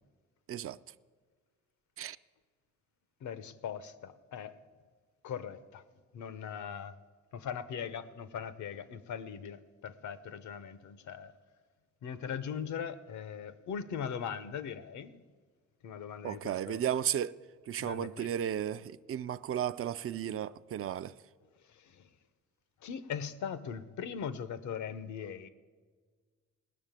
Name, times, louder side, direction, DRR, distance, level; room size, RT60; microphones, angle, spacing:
voice 1, 3.2-4.5 5.2-5.8 6.1-7.0 7.3-11.3 12.0-15.2 15.8-16.8 17.8-18.3 21.7-22.1 22.8-25.5, left 7 dB, 70° left, 0.9 m, -40 dB
voice 2, 16.2-17.4 17.7-21.1, right 10 dB, 50° right, 0.5 m, -34 dB
18.0 x 6.5 x 9.0 m
cardioid pair, 90°, 30 cm